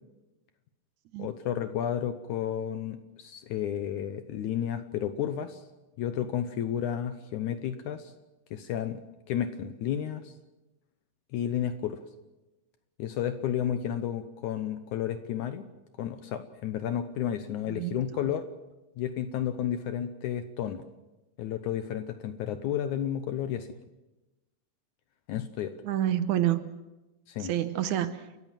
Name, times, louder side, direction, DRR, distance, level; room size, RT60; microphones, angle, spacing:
voice 1, 1.2-5.6 6.0-8.1 8.5-9.0 9.3-10.3 11.3-12.0 13.0-15.6 16.0-18.5 19.0-20.9 21.4-23.8 25.3-25.7 27.3-27.5, left 10 dB, 70° left, 10 dB, 2.2 m, -32 dB
voice 2, 17.7-18.3 25.8-26.7 27.4-28.3, right 12 dB, 70° right, 12 dB, 2.0 m, -29 dB
29.5 x 14.5 x 7.4 m, 1.1 s
omnidirectional pair, 3.9 m